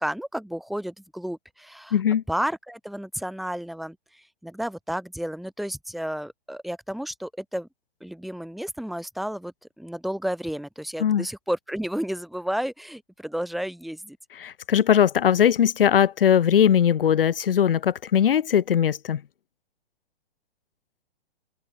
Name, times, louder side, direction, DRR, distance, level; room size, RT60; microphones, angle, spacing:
voice 1, 0.0-2.0 2.3-7.7 8.0-14.2, equal, ahead, 1.7 m, -32 dB
voice 2, 1.9-2.2 11.0-11.2 14.4-19.2, left 9 dB, 60° left, 1.0 m, -20 dB
hypercardioid pair, 180°, 31 cm